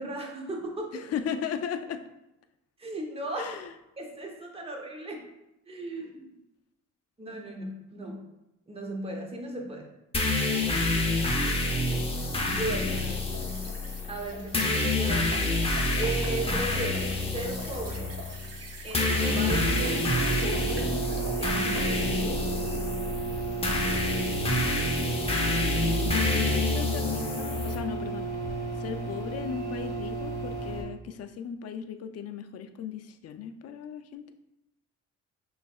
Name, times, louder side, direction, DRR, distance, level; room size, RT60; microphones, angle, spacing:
voice 1, 0.0-0.9 2.8-3.5 4.0-5.2 5.7-6.3 7.2-8.2 8.7-9.9 12.5-13.0 14.1-15.5 15.9-18.1 18.8-22.5, right 2 dB, 20° right, 0 dB, 1.0 m, -36 dB
voice 2, 0.9-2.0 3.4-3.7 12.9-13.4 26.0-28.3 28.8-34.3, left 7 dB, 55° left, 9 dB, 0.5 m, -37 dB
sound 1, 10.1-27.8, left 2 dB, 20° left, 0.8 m, -28 dB
sound 2, 11.1-21.9, right 3 dB, 55° right, 0.9 m, -46 dB
sound 3, 19.1-30.8, right 4 dB, 80° right, 1.5 m, -33 dB
5.6 x 3.2 x 2.3 m, 0.89 s
cardioid pair, 90°, 30 cm